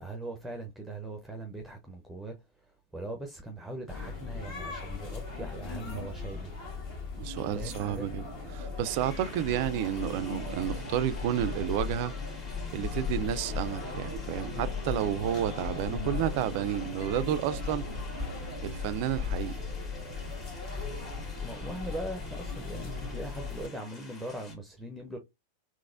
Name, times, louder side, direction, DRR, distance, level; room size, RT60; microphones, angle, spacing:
voice 1, 0.0-2.4 2.9-6.5 7.5-8.1 15.9-16.2 21.4-25.2, right 2 dB, ahead, 0.7 m, -40 dB
sound 1, 3.9-23.7, left 4 dB, 45° left, 1.5 m, -37 dB
voice 2, 7.2-8.2 8.5-12.1 12.7-17.8 18.6-19.6, right 11 dB, 45° right, 0.4 m, -31 dB
reverbed subway, 8.8-24.6, left 2 dB, 25° left, 1.5 m, -51 dB
3.9 x 3.0 x 2.5 m
figure-of-eight pair, 90°, 0 cm